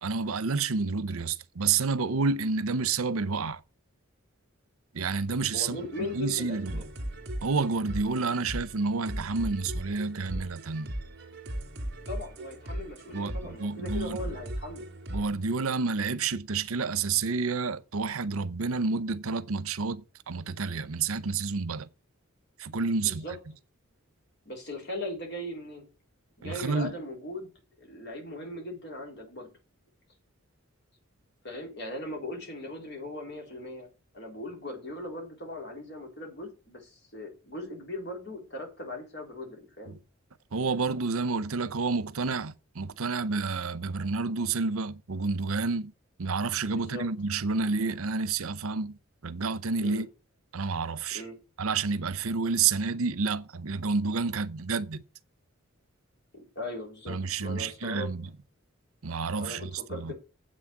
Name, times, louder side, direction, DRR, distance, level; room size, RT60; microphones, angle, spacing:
voice 1, 0.0-3.6 4.9-6.8 7.4-10.9 13.1-14.2 15.1-21.9 22.6-23.2 26.4-26.9 39.9-40.0 40.5-45.9 46.2-50.1 50.5-51.2 51.6-55.0 57.1-58.3 59.0-60.1, right 4 dB, 85° right, 0.7 m, -29 dB
voice 2, 5.5-6.9 12.1-14.9 22.9-23.3 24.5-25.8 26.4-27.5 27.8-29.5 31.4-33.9 34.1-40.0 46.7-47.0 49.8-50.0 51.1-51.3 56.3-58.1 59.4-60.1, left 1 dB, 50° left, 4.0 m, -39 dB
sound 1, 5.6-15.3, right 1 dB, 55° right, 2.4 m, -38 dB
7.8 x 6.3 x 7.4 m
head